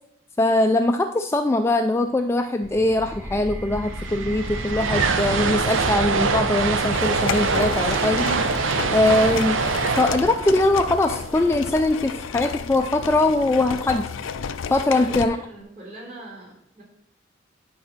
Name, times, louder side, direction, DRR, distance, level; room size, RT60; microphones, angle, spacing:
voice 1, 0.4-8.3 8.9-9.6 10.0-14.0 14.7-15.4, left 2 dB, 15° left, 6 dB, 0.3 m, -21 dB
sound 1, 2.6-14.0, equal, 10° right, 0.7 m, -38 dB
sound 2, 3.7-11.9, right 4 dB, 80° right, 0.7 m, -24 dB
sound 3, 6.9-15.3, left 6 dB, 90° left, 0.5 m, -32 dB
voice 2, 14.9-16.8, right 1 dB, 40° right, -4 dB, 3.4 m, -41 dB
10.0 x 4.2 x 5.9 m, 0.75 s
head